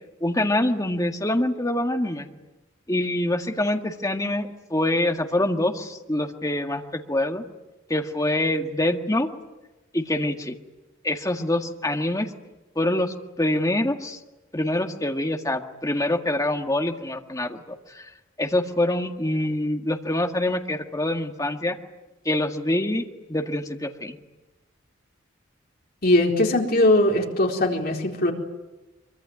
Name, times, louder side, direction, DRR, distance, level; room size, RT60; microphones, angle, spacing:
voice 1, 0.2-2.3 2.9-7.4 7.9-9.3 9.9-10.6 11.0-12.3 12.8-14.2 14.5-17.6 17.9-18.1 18.4-21.8 22.3-23.0 23.3-24.2, left 1 dB, 15° left, 4 dB, 1.8 m, -25 dB
voice 2, 26.0-28.3, left 1 dB, 50° left, 1 dB, 4.3 m, -20 dB
24.5 x 24.0 x 9.6 m, 1.1 s
head